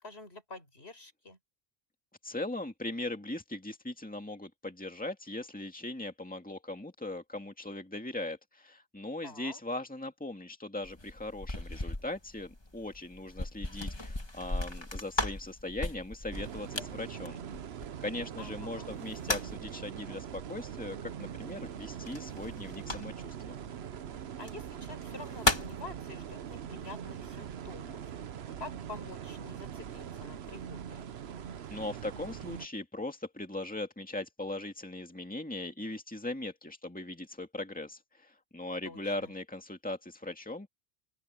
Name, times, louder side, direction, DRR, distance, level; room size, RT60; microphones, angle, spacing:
voice 1, 0.0-1.4 9.2-9.6 18.4-18.9 24.4-28.0 28.6-31.0 38.8-39.3, left 3 dB, 85° left, 4.9 m, -47 dB
voice 2, 2.2-17.4 18.0-23.5 31.7-40.7, left 2 dB, 10° left, 2.1 m, -39 dB
sound 1, 10.8-18.2 18.9-19.7 22.1-23.4 24.3-24.5 25.0-25.8, left 2 dB, 25° left, 1.8 m, -36 dB
sound 2, 16.3-32.7, right 8 dB, 80° right, 1.1 m, -42 dB
open air
omnidirectional pair, 1.0 m